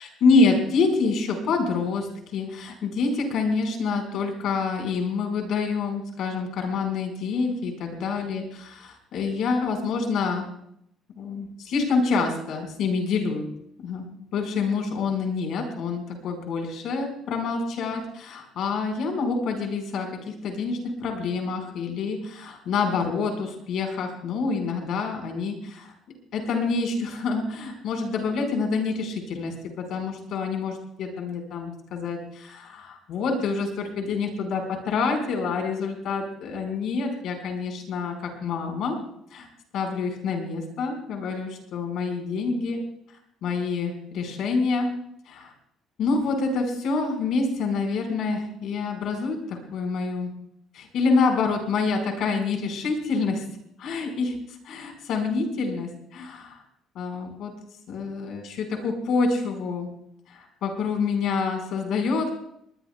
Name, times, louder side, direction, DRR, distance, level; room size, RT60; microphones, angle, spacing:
voice 1, 0.0-8.4 8.8-10.5 11.2-13.6 13.8-14.0 14.3-25.9 26.3-39.0 39.3-39.5 39.7-42.8 43.4-44.9 45.3-45.5 46.0-50.3 50.7-53.4 53.8-54.4 54.6-56.6 56.9-57.5 57.9-59.9 60.3-62.3, left 4 dB, 50° left, 4 dB, 4.3 m, -27 dB
21.5 x 20.0 x 2.2 m, 0.71 s
cardioid pair, 175°, 0 cm